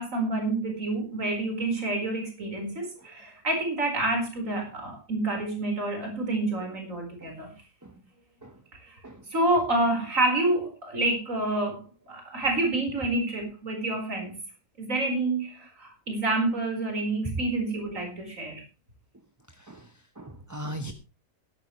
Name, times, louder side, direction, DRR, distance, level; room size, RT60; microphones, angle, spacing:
voice 1, 0.0-7.5 8.8-9.0 9.3-14.3 14.8-18.6, right 2 dB, 55° right, 3 dB, 5.1 m, -28 dB
voice 2, 20.2-20.9, right 1 dB, 15° right, 7 dB, 1.0 m, -37 dB
16.0 x 13.5 x 3.2 m, 0.30 s
omnidirectional pair, 1.6 m